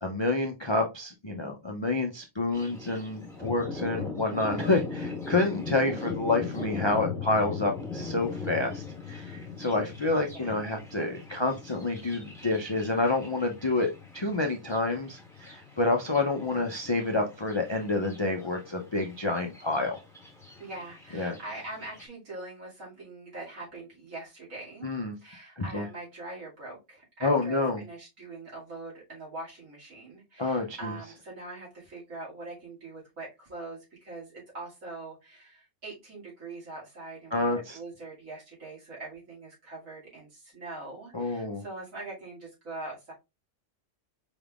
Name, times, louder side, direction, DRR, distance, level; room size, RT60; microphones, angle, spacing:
voice 1, 0.0-20.0 21.1-21.3 24.8-25.1 25.6-25.8 27.2-27.8 30.4-31.0 37.3-37.8 41.1-41.6, left 2 dB, 40° left, 3 dB, 0.4 m, -28 dB
Thunder, 2.5-22.1, left 4 dB, ahead, 1.5 m, -40 dB
voice 2, 20.6-24.9 25.2-43.1, right 2 dB, 75° right, -5 dB, 2.7 m, -43 dB
5.1 x 3.5 x 2.4 m, 0.24 s
omnidirectional pair, 1.4 m